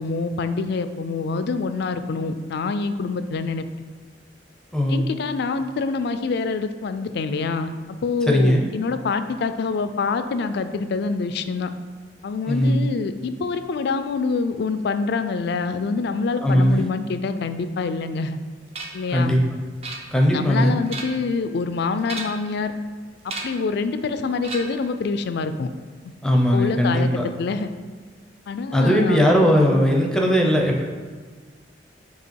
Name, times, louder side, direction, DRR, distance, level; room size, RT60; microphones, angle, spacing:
voice 1, 0.0-3.7 4.9-11.7 12.2-18.4 18.9-19.4 20.3-22.7 23.2-25.7 26.0-26.1 26.5-27.1 27.4-27.7 28.5-29.2, left 4 dB, 65° left, 10 dB, 0.4 m, -26 dB
voice 2, 4.7-5.0 8.3-8.7 12.5-12.9 16.4-16.9 19.1-19.4 20.1-20.8 26.2-27.2 28.7-30.8, equal, 5° left, 0 dB, 0.6 m, -19 dB
sound 1, 18.7-19.1 19.8-20.4 20.8-21.3 22.0-22.6 23.3-23.7 24.4-24.9, right 3 dB, 35° right, 0.6 m, -34 dB
7.7 x 2.8 x 4.6 m, 1.5 s
head